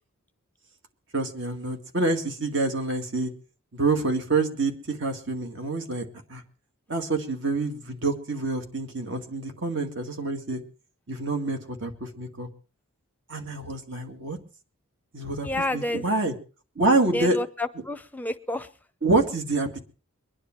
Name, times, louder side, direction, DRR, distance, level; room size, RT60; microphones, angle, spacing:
voice 1, 1.1-3.3 3.7-6.4 6.9-10.6 11.1-12.5 13.3-14.4 15.1-16.3 16.8-17.4 19.0-19.8, right 3 dB, 55° right, 5 dB, 2.1 m, -27 dB
voice 2, 15.4-16.0 17.1-18.7, left 1 dB, 10° left, 10 dB, 0.7 m, -29 dB
23.5 x 10.0 x 4.6 m, 0.37 s
head